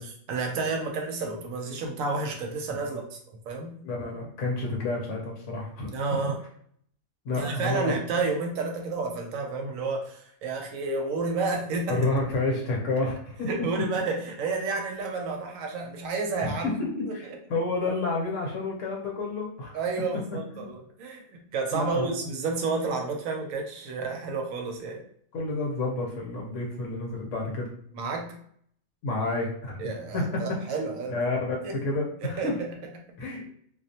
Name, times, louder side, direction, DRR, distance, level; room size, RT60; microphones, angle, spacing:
voice 1, 0.0-3.8 5.9-6.4 7.4-12.0 13.5-16.8 17.2-17.4 19.7-25.0 27.9-28.3 29.8-31.1 31.6-31.8 32.2-33.4, right 3 dB, 75° right, 2 dB, 0.9 m, -31 dB
voice 2, 3.8-5.9 7.2-7.9 11.9-13.5 16.4-19.8 20.5-20.6 21.7-22.1 25.3-27.7 29.0-30.4 31.1-32.5 33.2-33.4, left 2 dB, 65° left, -1 dB, 1.0 m, -30 dB
2.4 x 2.0 x 2.7 m, 0.65 s
omnidirectional pair, 1.5 m